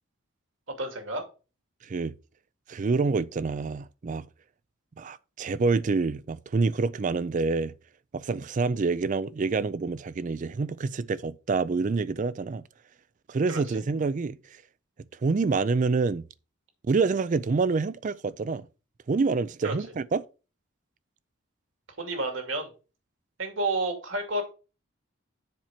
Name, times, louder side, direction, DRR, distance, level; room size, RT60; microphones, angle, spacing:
voice 1, 0.8-1.2 13.5-13.6 19.6-19.7 22.0-22.7 23.4-24.4, right 2 dB, 65° right, 2.4 m, -30 dB
voice 2, 1.8-2.1 2.7-4.2 5.0-7.7 8.1-12.6 13.3-14.4 15.2-16.2 16.9-18.7 19.1-20.2, right 4 dB, 40° right, 0.4 m, -27 dB
7.4 x 4.4 x 5.8 m
head